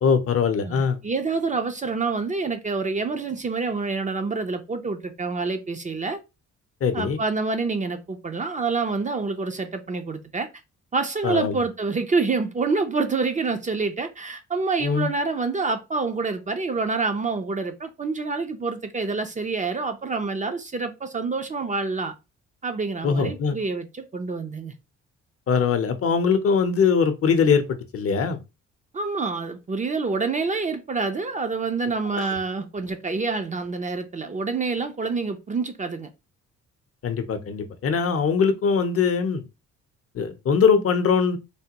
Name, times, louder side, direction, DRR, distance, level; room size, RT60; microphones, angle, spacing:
voice 1, 0.0-1.0 6.8-7.2 11.2-11.6 14.8-15.1 23.0-23.6 25.5-28.4 32.1-32.3 37.0-39.4 40.1-41.4, left 6 dB, 50° left, 0.6 m, -22 dB
voice 2, 0.7-6.2 6.9-10.5 10.9-22.1 22.6-24.7 28.9-36.1, right 4 dB, 25° right, 0.5 m, -27 dB
3.3 x 2.2 x 2.8 m
cardioid pair, 90°, 30 cm